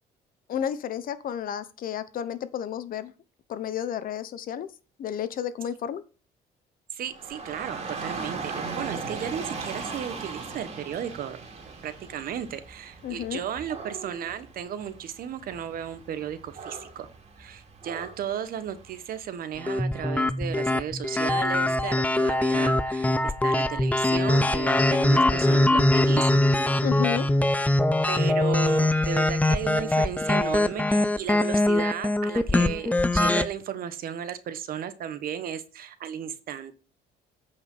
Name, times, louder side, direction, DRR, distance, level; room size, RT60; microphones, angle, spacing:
voice 1, 0.5-3.1 3.5-4.7 5.0-6.0 13.0-13.4 26.8-27.3, left 9 dB, 55° left, 14 dB, 0.9 m, -31 dB
voice 2, 6.9-11.4 11.8-17.1 17.4-26.5 28.1-36.7, right 9 dB, 60° right, 12 dB, 1.1 m, -34 dB
Dog / Rain, 7.1-19.2, right 4 dB, 40° right, 2.5 m, -39 dB
sound 1, 19.7-33.5, left 1 dB, 10° left, 0.5 m, -23 dB
8.6 x 5.0 x 5.5 m, 0.35 s
cardioid pair, 110°, 17 cm